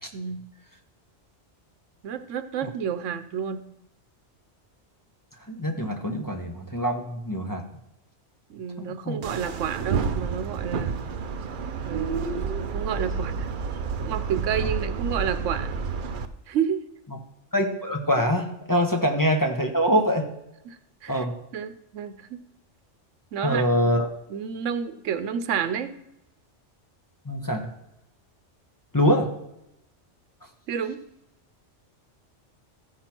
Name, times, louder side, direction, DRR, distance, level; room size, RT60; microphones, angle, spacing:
voice 1, 0.1-0.4 2.0-3.6 8.5-11.0 11.8-13.5 14.0-15.7 16.5-16.8 20.6-21.2 21.5-22.4 23.3-23.9 24.3-25.9 30.7-31.0, right 7 dB, 85° right, 11 dB, 1.1 m, -30 dB
voice 2, 5.5-7.6 8.8-9.2 17.5-20.3 21.1-21.3 23.4-24.1 27.3-27.7 28.9-29.3, equal, 20° left, 2 dB, 0.9 m, -24 dB
sound 1, 9.2-16.3, right 5 dB, 55° right, 0.7 m, -29 dB
14.5 x 5.8 x 4.4 m, 0.85 s
omnidirectional pair, 1.2 m